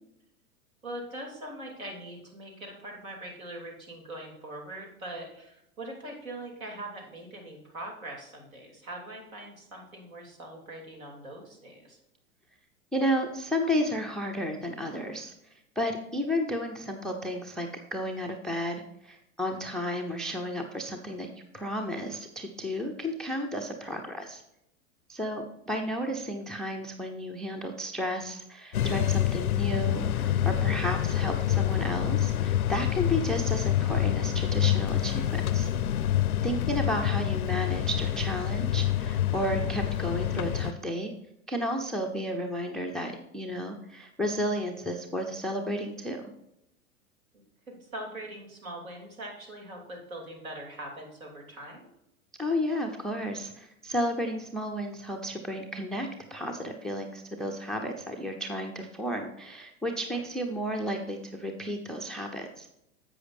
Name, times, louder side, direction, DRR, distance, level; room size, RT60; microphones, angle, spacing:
voice 1, 0.8-12.0 36.2-36.7 47.7-51.9 60.1-60.2, right 1 dB, 70° right, 1 dB, 3.1 m, -42 dB
voice 2, 12.9-15.3 15.8-24.4 25.1-35.7 36.4-41.1 41.5-46.3 52.4-62.7, equal, ahead, 4 dB, 0.4 m, -32 dB
sound 1, 28.7-40.7, left 11 dB, 80° left, 0.5 m, -27 dB
10.5 x 8.1 x 2.6 m, 0.81 s
figure-of-eight pair, 95°, 43 cm